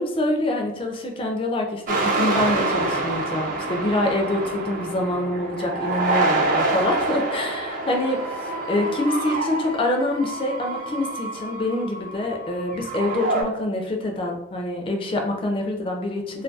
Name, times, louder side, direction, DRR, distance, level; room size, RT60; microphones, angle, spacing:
voice 1, 0.0-8.2 8.7-16.4, left 1 dB, 25° left, 2 dB, 0.3 m, -25 dB
sound 1, 1.9-13.4, right 2 dB, 45° right, 0.4 m, -26 dB
2.2 x 2.2 x 2.6 m, 0.85 s
head